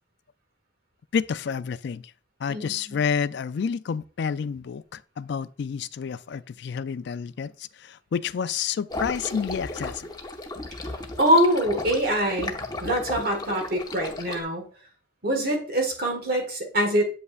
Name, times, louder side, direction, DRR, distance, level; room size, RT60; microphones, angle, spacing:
voice 1, 1.1-2.0 2.4-10.1, left 6 dB, 60° left, 0.3 m, -29 dB
voice 2, 2.5-3.0 10.8-12.5 12.8-14.6 15.2-17.0, equal, 50° right, 1.7 m, -24 dB
sound 1, 8.9-14.4, left 2 dB, 20° left, 0.7 m, -34 dB
8.0 x 5.4 x 2.4 m
head